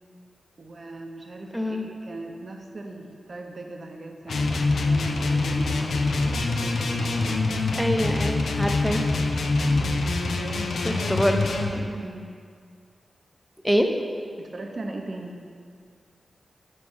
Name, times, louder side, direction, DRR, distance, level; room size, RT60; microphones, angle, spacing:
voice 1, 0.6-7.5 9.6-10.0 10.3-11.2 11.6-12.3 14.4-15.4, right 2 dB, 50° right, 3 dB, 0.7 m, -39 dB
voice 2, 1.5-1.9 7.8-9.0 10.8-11.4 13.6-13.9, equal, ahead, 4 dB, 0.6 m, -24 dB
sound 1, 4.3-11.7, left 3 dB, 85° left, 0.5 m, -25 dB
5.4 x 4.9 x 6.1 m, 2.1 s
wide cardioid pair, 80°, 0 cm